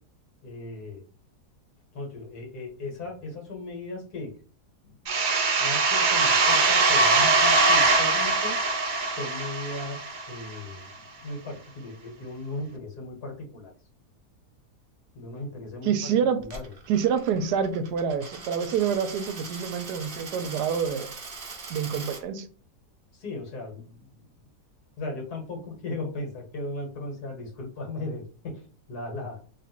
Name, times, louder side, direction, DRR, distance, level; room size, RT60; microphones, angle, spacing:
voice 1, 0.4-1.0 1.9-4.3 5.6-8.5 9.1-13.7 15.1-15.9 16.4-16.7 23.1-24.1 25.0-28.6 28.9-29.4, left 2 dB, 70° left, 1.9 m, -37 dB
sound 1, 5.0-10.5, right 3 dB, 70° right, 0.4 m, -22 dB
voice 2, 15.8-16.4 16.9-21.1 21.7-22.5, right 7 dB, 85° right, 1.2 m, -27 dB
Coin (dropping), 16.4-22.2, right 4 dB, 40° right, 0.9 m, -41 dB
3.6 x 2.5 x 4.2 m
omnidirectional pair, 1.8 m